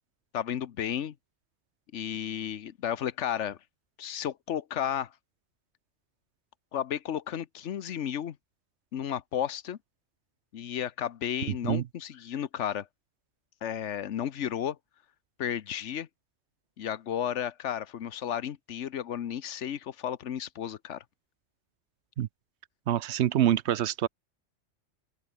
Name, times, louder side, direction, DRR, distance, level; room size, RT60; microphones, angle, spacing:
voice 1, 0.3-1.1 1.9-3.6 4.0-5.1 6.7-8.4 8.9-9.8 10.5-12.9 13.6-14.8 15.4-16.1 16.8-21.0, left 9 dB, 85° left, 1.2 m, -33 dB
voice 2, 22.9-24.1, right 11 dB, 75° right, 0.9 m, -25 dB
open air
omnidirectional pair, 1.2 m